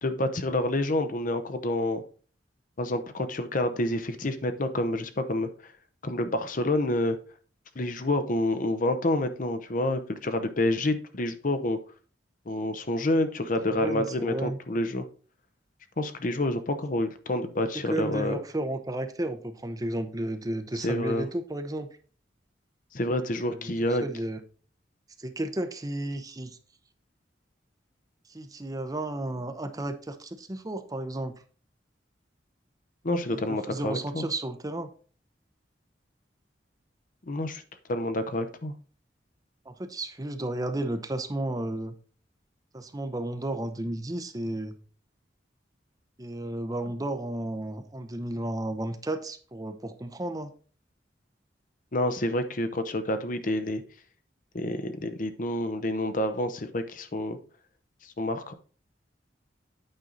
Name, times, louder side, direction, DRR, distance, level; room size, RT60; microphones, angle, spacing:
voice 1, 0.0-2.0 2.8-5.7 6.0-7.2 7.8-11.8 12.5-15.0 16.0-18.4 20.8-21.3 22.9-24.0 33.0-34.3 37.3-37.6 37.9-38.7 51.9-53.8 54.5-57.4 58.0-58.5, left 1 dB, 45° left, 9 dB, 0.8 m, -28 dB
voice 2, 13.7-14.6 17.9-21.9 23.5-24.4 25.2-26.6 28.3-31.3 33.3-34.9 39.7-41.9 42.7-44.8 46.2-50.5, right 1 dB, 20° right, 8 dB, 0.7 m, -33 dB
8.9 x 5.4 x 3.9 m, 0.40 s
head